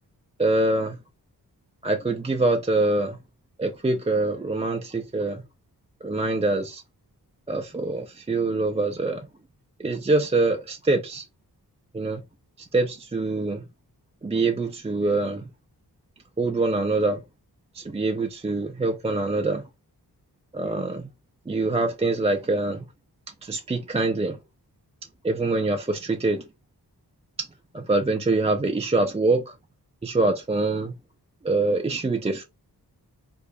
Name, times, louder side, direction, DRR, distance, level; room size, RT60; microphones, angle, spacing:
voice 1, 0.4-1.0 1.8-3.2 3.6-5.4 6.0-6.8 7.5-9.3 9.8-11.2 11.9-12.2 12.6-13.7 14.2-15.5 16.4-17.2 17.7-19.6 20.5-21.1 21.5-22.8 23.4-24.4 25.2-26.4 27.7-29.5 30.0-31.0 31.4-32.4, right 2 dB, 15° right, 0.4 m, -24 dB
4.8 x 2.5 x 2.5 m
cardioid pair, 65°, 38 cm